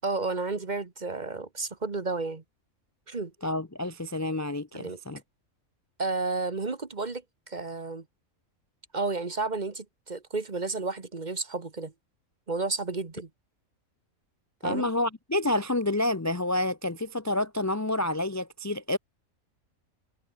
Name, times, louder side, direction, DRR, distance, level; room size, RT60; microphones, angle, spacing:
voice 1, 0.0-2.4 3.1-3.3 4.7-5.0 6.0-7.2 7.5-8.0 8.9-11.9 12.5-13.3 14.6-14.9, right 3 dB, 35° right, 1.5 m, -32 dB
voice 2, 3.4-5.2 14.6-19.0, left 1 dB, 15° left, 0.6 m, -29 dB
omnidirectional pair, 1.4 m